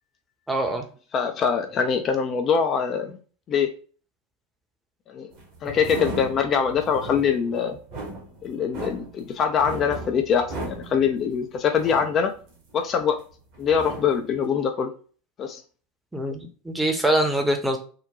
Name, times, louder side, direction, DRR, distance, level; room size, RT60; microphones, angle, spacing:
voice 1, 0.5-0.8 16.1-17.8, right 1 dB, 5° right, 3 dB, 0.8 m, -24 dB
voice 2, 1.1-3.2 3.5-3.7 5.1-5.3 5.6-7.8 8.4-12.3 12.7-13.2 13.6-14.9 15.4-15.6, left 7 dB, 35° left, 5 dB, 0.5 m, -23 dB
sound 1, 5.3-13.2 13.5-14.4, right 2 dB, 50° right, 1.3 m, -37 dB
3.7 x 2.2 x 2.9 m, 0.40 s
figure-of-eight pair, 80°, 0 cm